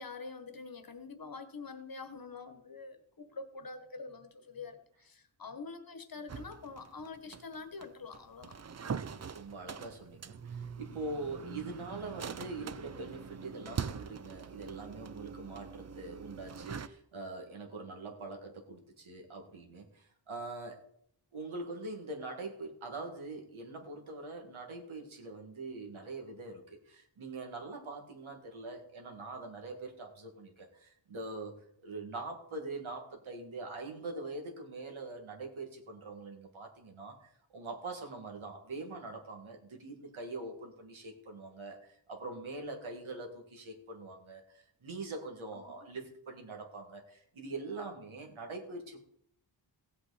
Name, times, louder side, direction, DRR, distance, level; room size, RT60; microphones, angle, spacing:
voice 1, 0.0-8.6 45.5-45.9, left 4 dB, 45° left, 9 dB, 1.3 m, -46 dB
sound 1, 6.3-16.9, right 6 dB, 35° right, 0.5 m, -43 dB
voice 2, 8.8-20.8 21.3-31.6 31.8-49.0, right 3 dB, 85° right, 2 dB, 2.2 m, -43 dB
16.0 x 8.1 x 4.2 m, 0.68 s
wide cardioid pair, 110°, 47 cm